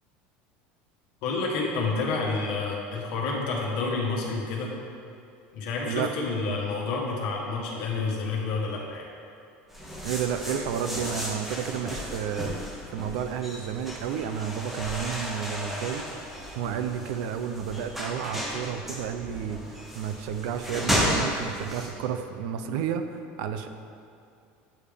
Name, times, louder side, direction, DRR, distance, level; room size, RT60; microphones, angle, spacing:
voice 1, 1.2-4.7 5.5-9.0, left 3 dB, 65° left, -2 dB, 1.1 m, -29 dB
sound 1, 9.7-21.9, equal, 5° right, 0.7 m, -33 dB
voice 2, 10.0-12.6 12.9-23.7, right 8 dB, 70° right, 8 dB, 0.4 m, -31 dB
8.4 x 3.3 x 3.5 m, 2.5 s
cardioid pair, 150°, 5 cm